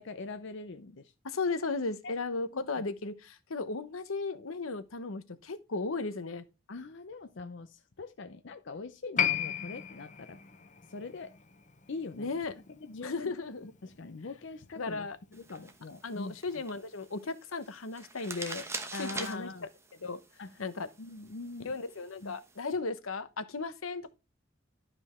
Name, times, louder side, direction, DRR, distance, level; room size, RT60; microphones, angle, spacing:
voice 1, 0.0-1.1 2.0-2.2 2.5-2.8 6.7-10.4 10.9-11.4 11.9-12.3 12.8-13.3 13.8-16.4 18.9-19.7 20.4-20.5 21.0-21.8 22.2-22.3, left 3 dB, 60° left, 0.6 m, -43 dB
voice 2, 1.2-6.4 12.2-12.5 13.0-13.7 14.8-15.2 16.0-18.6 19.0-19.5 20.0-20.2 20.6-20.9 21.6-24.1, left 3 dB, 90° left, 0.9 m, -35 dB
Piano, 9.2-16.1 16.4-16.5, left 9 dB, 35° left, 0.9 m, -37 dB
sound 1, 15.3-22.7, right 3 dB, 15° right, 1.0 m, -45 dB
11.5 x 5.3 x 4.3 m
head